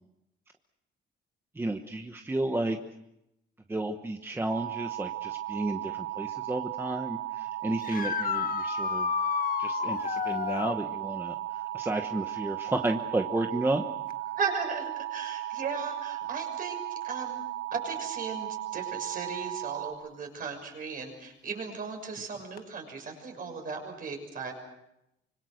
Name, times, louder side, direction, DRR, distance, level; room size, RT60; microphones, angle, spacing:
voice 1, 1.5-2.8 3.7-9.1 9.6-13.8, right 2 dB, 10° right, 5 dB, 1.2 m, -32 dB
sound 1, 4.5-19.9, right 13 dB, 80° right, 3.0 m, -36 dB
sound 2, 7.8-10.8 14.1-14.2 16.2-16.3 22.6-22.7, left 8 dB, 45° left, 1.4 m, -30 dB
voice 2, 14.4-17.4 17.7-24.5, right 5 dB, 45° right, 3 dB, 6.5 m, -36 dB
25.5 x 25.5 x 6.6 m, 0.86 s
cardioid pair, 155°, 20 cm